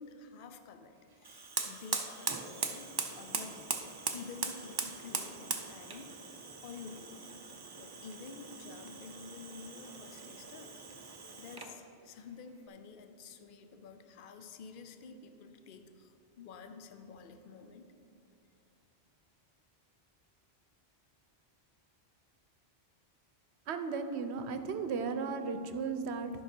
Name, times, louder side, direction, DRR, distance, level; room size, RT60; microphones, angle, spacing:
voice 1, 0.0-3.8 4.1-6.3 6.6-7.3 7.8-10.8 11.4-17.9, left 5 dB, 60° left, 7 dB, 0.7 m, -50 dB
Fire, 1.2-11.8, right 4 dB, 35° right, 0.4 m, -40 dB
voice 2, 23.7-26.3, right 5 dB, 85° right, 8 dB, 0.9 m, -35 dB
11.5 x 5.8 x 4.4 m, 2.8 s
omnidirectional pair, 1.1 m